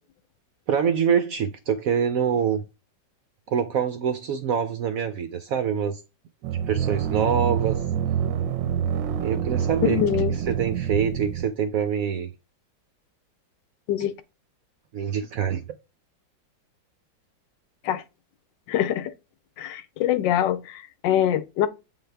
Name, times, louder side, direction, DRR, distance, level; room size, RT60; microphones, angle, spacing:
voice 1, 0.7-2.6 3.5-6.0 6.7-7.8 9.2-10.0 10.3-12.3 14.9-15.6, right 7 dB, 70° right, 0.8 m, -25 dB
sound 1, 6.4-11.4, right 8 dB, 90° right, 1.3 m, -26 dB
voice 2, 9.8-10.3 13.9-14.1 17.8-18.0 18.7-19.1 19.6-21.7, left 11 dB, 80° left, 1.3 m, -24 dB
7.7 x 3.8 x 3.4 m
omnidirectional pair, 2.0 m